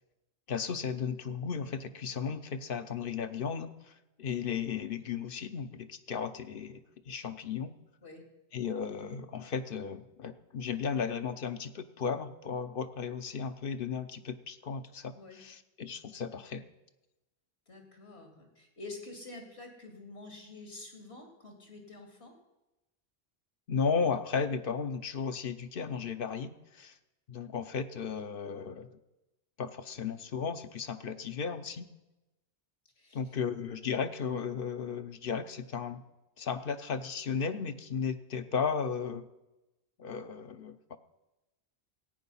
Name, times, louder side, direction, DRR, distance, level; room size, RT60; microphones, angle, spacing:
voice 1, 0.5-6.8 7.1-7.7 8.5-16.7 23.7-27.0 27.3-29.0 29.6-31.9 33.1-36.0 36.4-39.3 40.0-41.0, left 6 dB, 60° left, 10 dB, 0.9 m, -35 dB
voice 2, 17.7-22.3 33.0-33.2, left 2 dB, 80° left, 3 dB, 2.8 m, -48 dB
15.0 x 9.0 x 5.5 m, 1.0 s
omnidirectional pair, 1.1 m